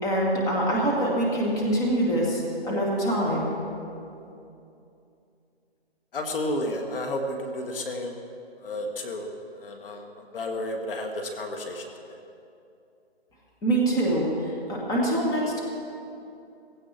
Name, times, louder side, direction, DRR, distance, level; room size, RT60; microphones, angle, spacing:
voice 1, 0.0-3.5 13.6-15.6, right 1 dB, 10° left, -3 dB, 1.9 m, -25 dB
voice 2, 6.1-8.2 8.6-9.3 9.5-12.2, left 1 dB, 55° left, 3 dB, 1.8 m, -32 dB
17.5 x 16.0 x 4.4 m, 2.7 s
hypercardioid pair, 155°, 33 cm